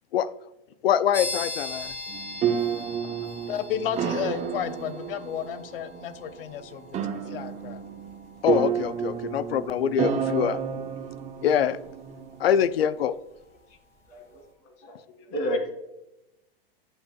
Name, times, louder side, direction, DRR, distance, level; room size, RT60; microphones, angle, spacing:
voice 1, 0.8-1.9 8.4-10.6 11.4-11.8 12.4-13.1, left 9 dB, 90° left, 0.6 m, -24 dB
sound 1, 1.1-13.7, left 2 dB, 10° left, 2.6 m, -42 dB
sound 2, 2.1-12.6, right 8 dB, 25° right, 0.8 m, -31 dB
voice 2, 3.5-7.8, left 9 dB, 70° left, 1.0 m, -33 dB
voice 3, 14.1-14.4 14.8-14.9 15.3-15.7, equal, 45° left, 3.1 m, -29 dB
16.5 x 5.6 x 2.4 m
hypercardioid pair, 130°, 29 cm